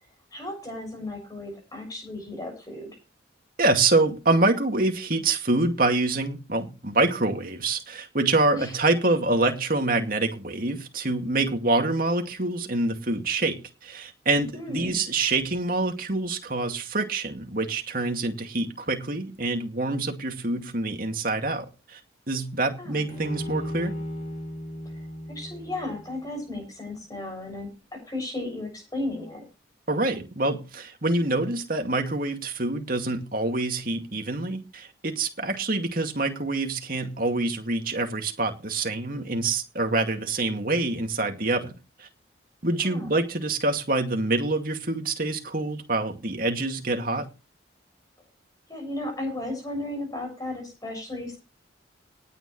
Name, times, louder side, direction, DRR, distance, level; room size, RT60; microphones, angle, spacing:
voice 1, 0.3-3.0 8.5-8.8 14.5-15.0 22.8-23.0 25.3-29.4 42.8-43.1 48.7-51.4, left 1 dB, 20° left, 6.8 m, -34 dB
voice 2, 3.6-22.0 22.3-23.9 29.9-41.7 42.0-42.1 42.6-47.3, right 2 dB, 50° right, 2.2 m, -26 dB
Bowed string instrument, 23.1-26.4, equal, 35° left, 6.6 m, -35 dB
19.0 x 9.4 x 3.2 m
head